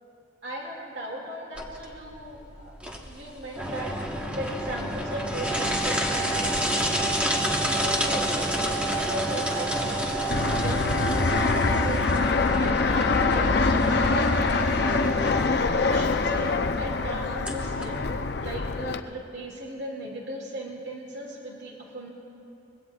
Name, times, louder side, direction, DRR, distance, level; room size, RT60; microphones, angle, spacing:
voice 1, 0.4-2.8 3.0-3.9 4.2-6.8 7.6-8.2 8.7-12.1 12.6-15.0 15.3-22.1, right 1 dB, 65° right, -2 dB, 2.3 m, -37 dB
sound 1, 1.6-18.6, right 1 dB, 5° right, 1.2 m, -29 dB
Fixed-wing aircraft airplane, 10.3-19.0, left 3 dB, 55° left, 0.6 m, -24 dB
25.0 x 21.5 x 2.4 m, 2.7 s
head